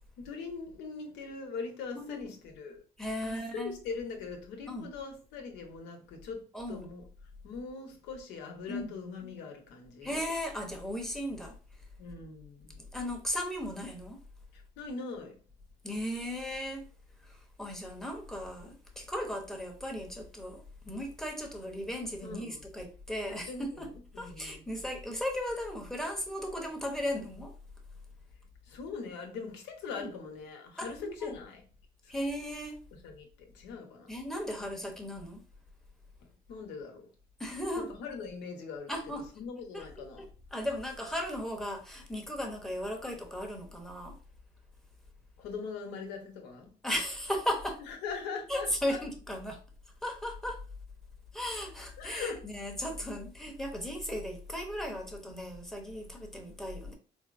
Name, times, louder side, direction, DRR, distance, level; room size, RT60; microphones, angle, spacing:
voice 1, 0.2-2.8 3.2-7.1 7.4-10.2 12.0-12.8 14.5-15.4 22.2-22.6 23.2-24.6 28.7-31.6 32.0-32.1 33.0-34.1 36.2-37.1 37.8-40.3 45.4-46.7 47.9-49.0 52.0-52.4, left 5 dB, 90° left, 0.9 m, -41 dB
voice 2, 3.0-3.7 4.7-4.9 6.5-6.9 8.7-8.9 10.0-11.5 12.8-14.2 15.8-16.9 17.3-23.9 24.2-27.5 29.9-30.1 30.8-31.3 32.1-32.8 34.1-35.4 37.4-37.9 38.9-39.2 39.7-39.8 40.5-44.2 46.8-47.8 48.5-49.6 50.0-50.6 51.3-56.9, equal, ahead, 0.7 m, -36 dB
4.3 x 2.0 x 2.4 m
cardioid pair, 110°, 17 cm